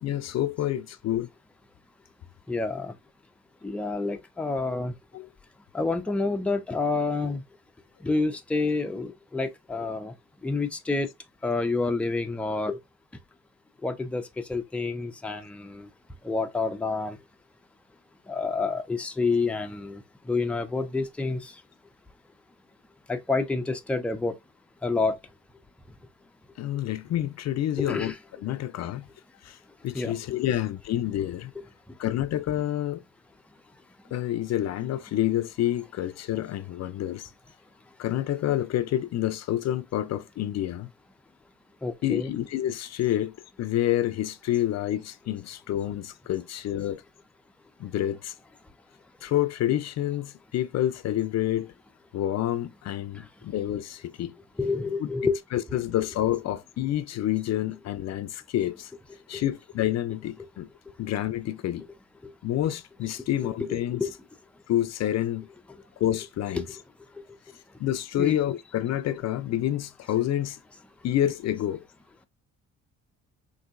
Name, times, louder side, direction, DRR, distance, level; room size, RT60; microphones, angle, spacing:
voice 1, 0.0-1.3 5.1-5.3 26.6-28.1 28.4-29.0 29.4-29.6 29.8-31.5 32.0-33.0 34.1-37.3 38.0-40.9 42.0-47.0 47.8-48.3 49.2-51.7 52.1-54.3 55.5-58.9 59.3-60.7 61.0-61.9 62.4-64.0 64.7-65.5 66.0-66.6 67.8-70.6 71.0-71.8, left 12 dB, 60° left, 0.5 m, -28 dB
voice 2, 2.5-2.9 3.6-4.9 5.7-7.4 8.0-10.1 10.4-11.1 11.4-12.8 13.8-14.2 14.5-15.9 16.2-17.2 18.3-20.0 20.3-21.5 23.1-24.4 24.8-25.2 27.8-28.2 29.9-30.1 41.8-42.3 53.1-53.2 54.6-55.4 55.7-55.8 62.2-62.3 63.4-63.5 64.0-64.1 66.5-66.6 68.2-68.4, left 3 dB, 5° left, 0.5 m, -28 dB
3.8 x 2.7 x 2.4 m
cardioid pair, 90°, 30 cm